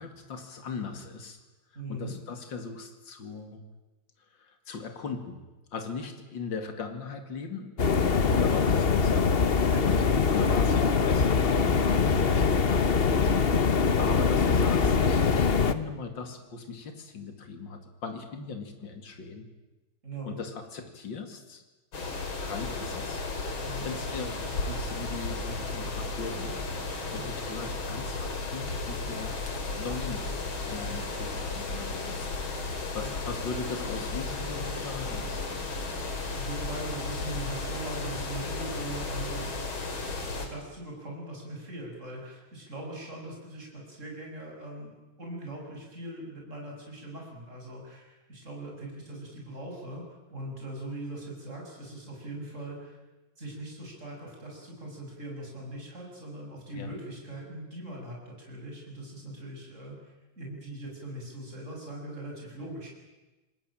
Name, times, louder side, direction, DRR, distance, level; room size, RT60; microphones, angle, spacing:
voice 1, 0.0-1.4 1.9-3.6 4.4-5.4 5.7-7.7 8.1-9.3 9.8-11.6 12.1-19.5 20.3-21.6 22.4-23.2 23.5-29.4 29.7-30.2 30.6-32.3 32.9-35.5 56.7-56.9, left 5 dB, 65° left, 7 dB, 3.1 m, -39 dB
voice 2, 1.7-2.1 9.7-10.2 20.0-20.4 23.6-23.9 27.1-27.3 33.0-33.1 36.3-39.6 40.4-44.9 45.2-50.0 50.3-53.0 53.4-62.9, right 1 dB, 35° right, -1 dB, 7.5 m, -40 dB
sound 1, 7.8-15.7, left 5 dB, 40° left, 1.0 m, -23 dB
sound 2, 21.9-40.5, left 3 dB, 90° left, 3.9 m, -34 dB
27.0 x 20.5 x 9.0 m, 1.1 s
omnidirectional pair, 2.2 m